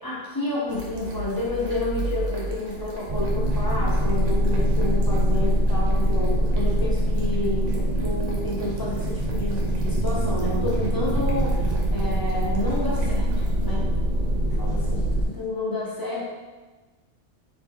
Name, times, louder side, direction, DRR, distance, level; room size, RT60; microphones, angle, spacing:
voice 1, 0.0-13.3 13.6-13.9 14.6-16.3, left 1 dB, 20° left, -5 dB, 0.9 m, -30 dB
sound 1, 0.7-15.5, right 2 dB, 90° right, 1.2 m, -38 dB
sound 2, 3.1-15.2, equal, 55° right, 0.5 m, -23 dB
4.2 x 3.0 x 3.6 m, 1.3 s
omnidirectional pair, 1.2 m